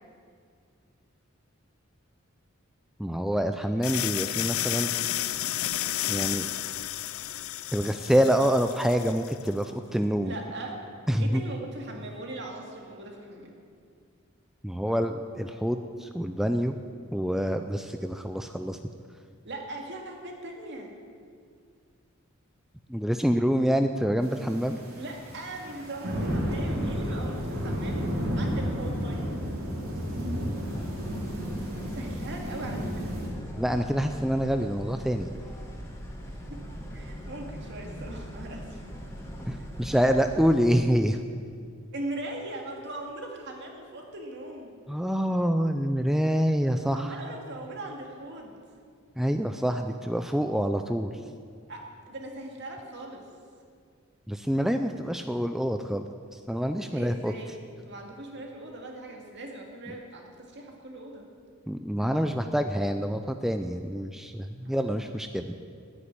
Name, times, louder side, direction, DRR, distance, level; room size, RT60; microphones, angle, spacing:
voice 1, 3.0-4.9 6.1-6.5 7.7-10.3 11.1-11.4 14.6-16.8 17.1-18.8 22.9-24.8 33.6-35.3 39.5-41.2 44.9-47.2 49.2-51.1 54.3-56.1 56.5-57.3 61.7-65.5, equal, ahead, 7 dB, 0.4 m, -26 dB
sound 1, 3.8-9.5, left 13 dB, 80° left, 0.5 m, -32 dB
voice 2, 10.2-10.8 11.2-13.6 19.4-20.9 25.0-28.1 28.4-29.4 31.9-33.2 36.5-36.6 36.9-38.8 39.6-39.7 41.9-44.8 46.9-48.6 51.7-53.2 56.9-57.6 57.8-61.3 64.6-65.2, right 1 dB, 60° right, 1 dB, 2.2 m, -40 dB
sound 2, 24.2-33.3, equal, 85° right, 3.3 m, -32 dB
sound 3, 30.5-40.6, equal, 15° left, 2.1 m, -41 dB
10.0 x 9.5 x 9.7 m, 2.2 s
head